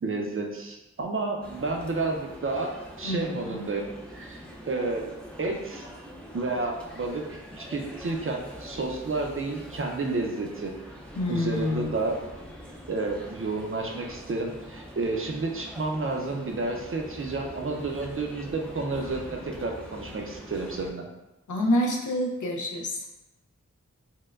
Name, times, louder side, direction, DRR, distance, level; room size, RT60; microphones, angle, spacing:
voice 1, 0.0-4.4 4.7-5.1 5.4-5.9 6.3-10.7 11.3-12.2 12.9-21.1, right 3 dB, 45° right, 2 dB, 0.5 m, -31 dB
sound 1, 1.4-20.9, equal, 5° left, 0.4 m, -44 dB
voice 2, 3.0-3.6 11.2-11.9 21.5-23.0, left 1 dB, 85° left, 0 dB, 0.6 m, -27 dB
4.4 x 2.1 x 2.4 m, 0.97 s
wide cardioid pair, 70°, 29 cm